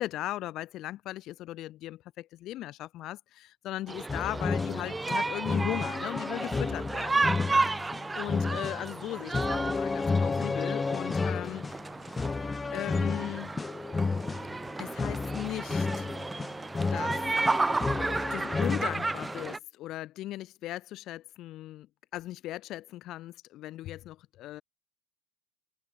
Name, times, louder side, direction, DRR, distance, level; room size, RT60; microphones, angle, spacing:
voice 1, 0.0-7.3 8.1-11.6 12.7-13.5 14.8-16.1 16.9-17.1 18.3-21.9 22.1-24.6, left 15 dB, 40° left, 3.3 m, -38 dB
sound 1, 3.9-19.6, right 3 dB, 10° right, 0.7 m, -33 dB
sound 2, 4.1-19.5, left 4 dB, 10° left, 1.0 m, -32 dB
supercardioid pair, 160°, 0 cm